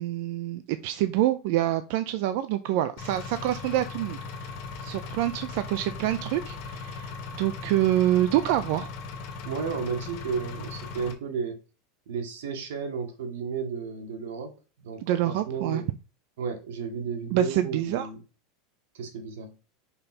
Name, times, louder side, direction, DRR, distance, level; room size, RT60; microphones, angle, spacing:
voice 1, 0.0-4.6 4.8-8.9 15.0-15.8 17.3-18.1, right 13 dB, 55° right, 0.6 m, -26 dB
Engine, 3.0-11.1, left 4 dB, 45° left, 2.0 m, -38 dB
voice 2, 9.4-11.6 12.1-15.9 16.4-18.2 18.9-19.6, right 5 dB, 90° right, 2.1 m, -33 dB
5.5 x 5.4 x 4.4 m
supercardioid pair, 160°, 0 cm